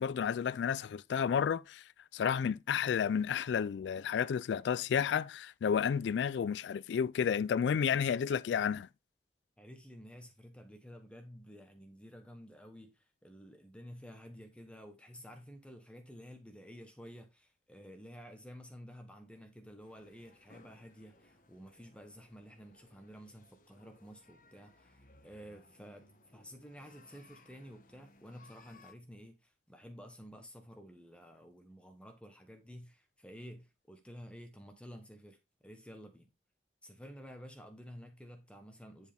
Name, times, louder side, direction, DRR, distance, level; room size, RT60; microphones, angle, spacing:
voice 1, 0.0-1.8 2.1-8.9, left 7 dB, 90° left, 0.3 m, -31 dB
voice 2, 9.6-36.3 36.8-39.1, equal, 5° left, 1.0 m, -52 dB
sound 1, 19.8-28.9, left 2 dB, 50° left, 1.3 m, -63 dB
10.5 x 4.6 x 3.4 m
head